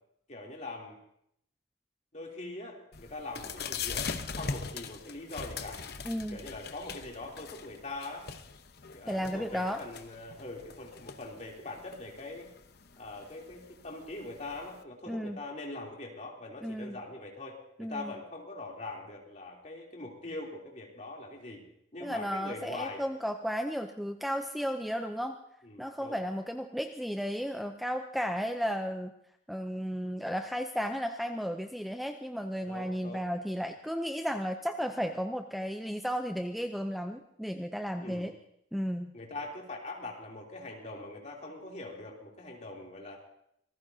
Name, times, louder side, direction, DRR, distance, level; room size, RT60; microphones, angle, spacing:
voice 1, 0.3-1.0 2.1-5.8 6.3-8.3 8.9-12.5 13.0-21.7 21.9-23.0 25.6-26.2 32.7-33.3 38.0-38.3 39.1-43.2, left 2 dB, 40° left, -1 dB, 3.1 m, -42 dB
sound 1, 2.9-14.8, left 5 dB, 55° left, 0.9 m, -42 dB
voice 2, 6.0-6.4 9.1-9.8 15.1-15.4 16.6-17.0 17.8-18.1 22.0-25.4 25.8-29.1 29.5-38.3 38.7-39.1, equal, ahead, 5 dB, 0.5 m, -34 dB
26.5 x 19.5 x 2.8 m, 0.74 s
head